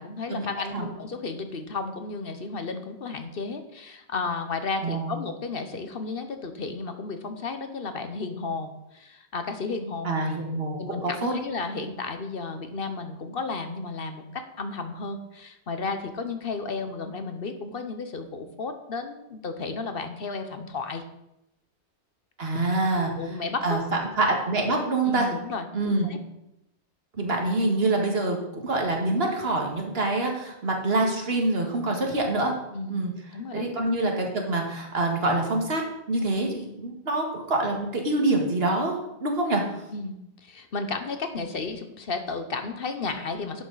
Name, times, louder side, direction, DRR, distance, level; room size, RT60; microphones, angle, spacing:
voice 1, 0.0-10.2 10.8-21.0 23.1-23.8 25.1-26.2 32.7-33.0 33.3-33.7 39.9-43.6, left 4 dB, 55° left, 7 dB, 1.1 m, -33 dB
voice 2, 10.0-11.3 22.4-23.1 23.6-23.8 24.2-25.3 25.7-26.1 27.2-32.5 32.9-33.1 33.5-35.8 36.1-39.6, right 2 dB, 60° right, 1 dB, 2.0 m, -25 dB
11.5 x 7.9 x 4.0 m, 0.86 s
omnidirectional pair, 1.1 m